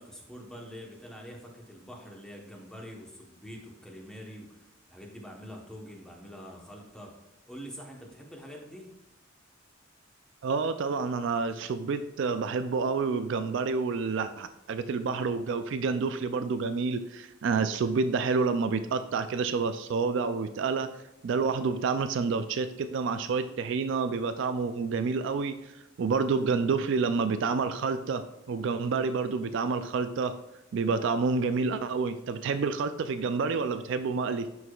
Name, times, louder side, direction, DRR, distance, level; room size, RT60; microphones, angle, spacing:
voice 1, 0.0-7.1 7.5-8.9, equal, 5° left, 0 dB, 1.0 m, -45 dB
voice 2, 10.4-20.9 21.2-25.6 26.0-30.3 30.7-34.5, right 4 dB, 65° right, 10 dB, 0.4 m, -28 dB
11.0 x 4.7 x 2.3 m, 0.94 s
head